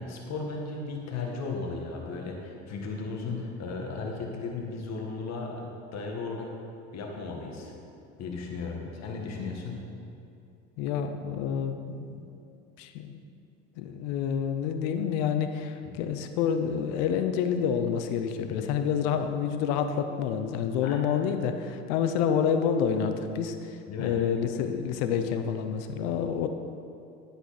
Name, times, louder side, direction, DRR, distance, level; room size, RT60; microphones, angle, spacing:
voice 1, 0.0-6.5 6.9-7.7 8.2-9.8 15.8-16.0 18.6-18.7 20.8-21.0 23.9-24.1, left 3 dB, 50° left, 0 dB, 2.0 m, -35 dB
voice 2, 10.8-12.3 12.8-13.2 13.8-23.6 24.0-26.5, left 7 dB, 75° left, 7 dB, 0.9 m, -28 dB
10.0 x 8.0 x 4.3 m, 2.6 s
hypercardioid pair, 75°, 33 cm